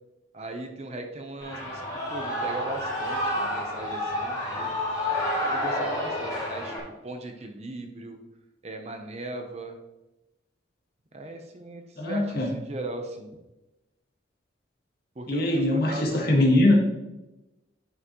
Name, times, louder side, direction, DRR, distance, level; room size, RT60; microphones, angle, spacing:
voice 1, 0.3-1.8 2.1-4.8 5.5-6.8 7.0-8.2 8.6-9.8 11.1-13.3 15.2-16.3, right 2 dB, 35° right, 5 dB, 0.8 m, -38 dB
Shout / Cheering, 1.4-6.8, left 1 dB, 20° left, 2.5 m, -29 dB
voice 2, 12.0-12.6 15.3-16.7, left 1 dB, 50° left, 0 dB, 1.7 m, -22 dB
9.7 x 5.8 x 3.0 m, 0.99 s
head